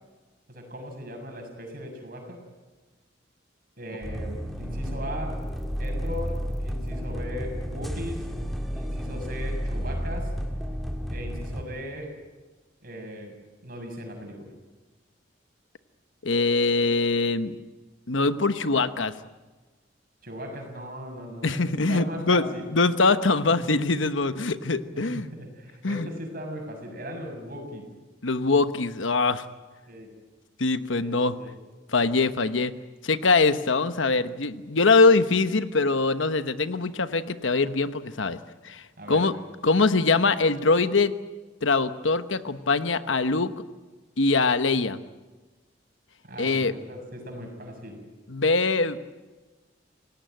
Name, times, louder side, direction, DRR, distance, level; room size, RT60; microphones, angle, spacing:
voice 1, 0.5-2.4 3.8-5.5 5.8-8.3 8.7-10.3 11.1-12.1 12.8-13.4 13.6-14.5 20.2-21.6 21.9-22.7 23.6-23.7 24.9-27.9 29.9-30.1 31.0-31.5 39.0-39.3 46.2-48.0, equal, 50° right, 3 dB, 6.7 m, -38 dB
sound 1, 4.0-11.6, equal, ahead, 1.9 m, -31 dB
voice 2, 16.2-17.5 18.1-19.1 21.4-25.3 25.8-26.1 28.2-29.4 30.6-31.3 31.9-32.7 33.0-38.4 38.6-38.8 39.1-39.3 39.6-41.1 41.6-43.5 44.2-45.0 46.4-46.7 48.3-49.0, left 3 dB, 90° left, 11 dB, 1.1 m, -23 dB
27.5 x 17.5 x 9.1 m, 1.3 s
head